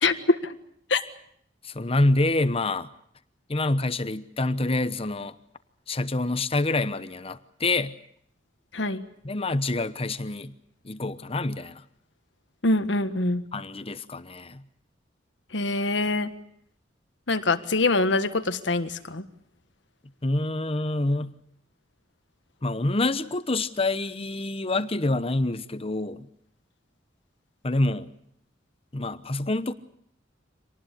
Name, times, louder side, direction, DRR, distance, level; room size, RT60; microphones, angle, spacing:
voice 1, 0.0-0.6 0.9-1.0 8.7-9.0 12.6-13.4 15.5-16.3 17.3-19.2, left 2 dB, 70° left, 10 dB, 1.5 m, -24 dB
voice 2, 1.6-2.9 3.5-5.4 5.9-8.0 9.2-10.5 10.8-11.8 13.5-14.6 20.2-21.4 22.6-26.3 27.6-28.1 28.9-29.7, left 2 dB, 30° left, 13 dB, 1.0 m, -27 dB
26.0 x 19.5 x 8.3 m, 0.68 s
head